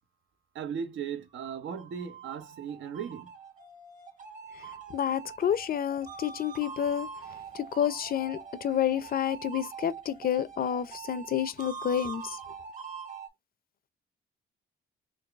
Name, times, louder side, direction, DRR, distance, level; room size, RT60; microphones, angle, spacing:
voice 1, 0.5-3.3, right 7 dB, 70° right, 0.8 m, -37 dB
sound 1, 1.5-13.3, right 5 dB, 40° right, 1.4 m, -44 dB
voice 2, 4.9-7.1 7.7-12.2, left 9 dB, 50° left, 0.5 m, -29 dB
4.0 x 2.5 x 3.4 m
cardioid pair, 90°, 20 cm